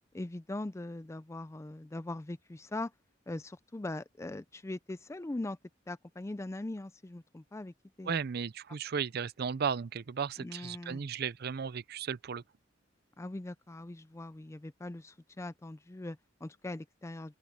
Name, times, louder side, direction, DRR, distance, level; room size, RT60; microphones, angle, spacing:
voice 1, 0.1-2.9 3.3-5.6 5.9-7.7 8.0-8.2 10.4-11.0 13.2-17.4, left 2 dB, 15° left, 0.4 m, -41 dB
voice 2, 8.0-12.4, right 6 dB, 55° right, 0.5 m, -35 dB
open air
head